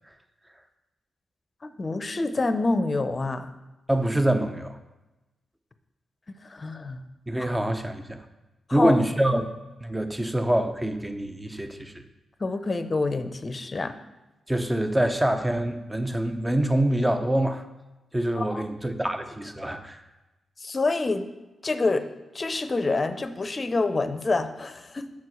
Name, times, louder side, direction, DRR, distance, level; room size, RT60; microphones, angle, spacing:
voice 1, 1.6-3.5 6.5-7.0 8.7-8.9 12.4-13.9 18.4-18.6 20.6-21.3 21.6-25.1, left 3 dB, 40° left, 10 dB, 0.6 m, -27 dB
voice 2, 3.9-4.8 7.3-8.2 8.7-9.5 9.8-12.0 14.5-17.7 18.1-20.0, right 1 dB, 15° right, 7 dB, 0.8 m, -25 dB
5.9 x 4.6 x 6.2 m, 1.0 s
supercardioid pair, 45°, 0 cm